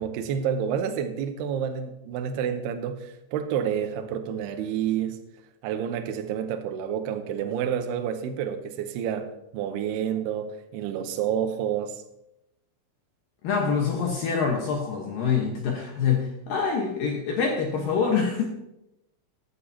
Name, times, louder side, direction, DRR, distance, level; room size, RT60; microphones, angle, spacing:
voice 1, 0.0-5.2 5.6-12.0, right 8 dB, 90° right, 7 dB, 2.3 m, -29 dB
voice 2, 13.4-18.5, left 6 dB, 75° left, 0 dB, 2.1 m, -25 dB
14.5 x 11.5 x 2.9 m, 0.87 s
omnidirectional pair, 6.0 m